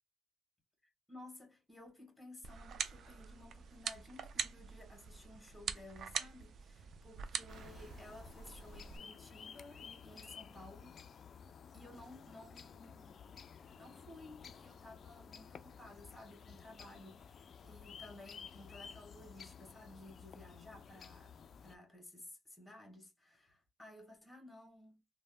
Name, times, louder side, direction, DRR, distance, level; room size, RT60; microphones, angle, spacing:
voice 1, 1.1-11.0 11.7-13.2 13.8-21.3 21.6-25.0, left 1 dB, 10° left, 1.3 m, -56 dB
sound 1, 2.4-9.0, right 7 dB, 60° right, 0.3 m, -44 dB
sound 2, 7.5-21.8, left 7 dB, 55° left, 0.3 m, -54 dB
3.3 x 2.1 x 2.4 m
cardioid pair, 90°, 0 cm